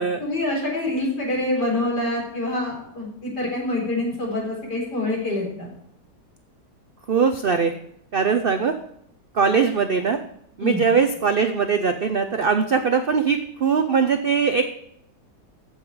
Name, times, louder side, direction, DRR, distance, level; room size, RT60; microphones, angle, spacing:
voice 1, 0.2-5.7 10.6-10.8, left 2 dB, 70° left, -3 dB, 4.7 m, -26 dB
voice 2, 7.1-7.7 8.1-8.7 9.3-10.2 10.6-14.7, right 5 dB, 70° right, 7 dB, 0.5 m, -21 dB
14.5 x 5.7 x 4.8 m, 0.72 s
omnidirectional pair, 1.9 m